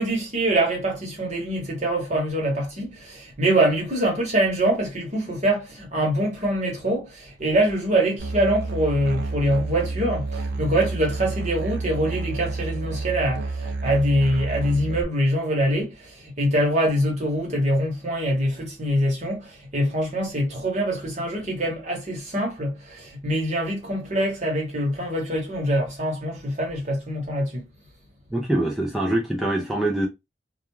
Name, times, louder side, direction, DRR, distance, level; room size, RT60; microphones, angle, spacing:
voice 1, 0.0-27.6, right 1 dB, 40° right, 1.1 m, -24 dB
Musical instrument, 8.2-15.0, right 3 dB, 60° right, 0.6 m, -30 dB
voice 2, 28.3-30.1, right 1 dB, ahead, 0.4 m, -24 dB
2.3 x 2.2 x 3.0 m
head